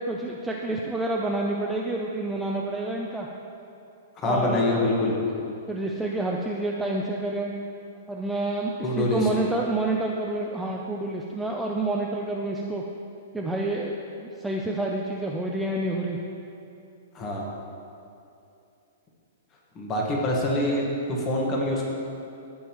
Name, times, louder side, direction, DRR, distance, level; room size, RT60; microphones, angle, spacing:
voice 1, 0.0-3.3 4.2-7.5 8.1-12.8 13.3-16.2, right 2 dB, 5° right, -2 dB, 0.4 m, -29 dB
voice 2, 4.2-5.2 8.8-9.3 17.1-17.4 19.7-21.8, left 1 dB, 20° left, -2 dB, 1.4 m, -25 dB
16.5 x 5.5 x 3.0 m, 2.7 s
hypercardioid pair, 165°, 0 cm